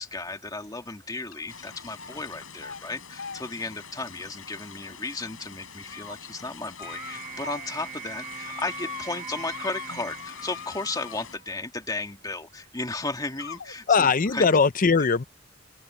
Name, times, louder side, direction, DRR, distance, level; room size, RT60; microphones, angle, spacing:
voice 1, 0.0-13.9 14.3-14.4, left 3 dB, 20° left, 2.1 m, -34 dB
sound 1, 1.3-1.6 1.9-2.3 2.6-2.8 3.2-5.1 5.6-6.2 6.8-7.7 8.0-11.6 12.6-12.7 13.4-13.7, left 5 dB, 65° left, 3.5 m, -42 dB
sound 2, 1.5-11.4, left 6 dB, 90° left, 6.1 m, -46 dB
sound 3, 6.8-11.3, right 8 dB, 50° right, 1.4 m, -41 dB
voice 2, 13.9-15.2, left 5 dB, 40° left, 0.6 m, -20 dB
open air
head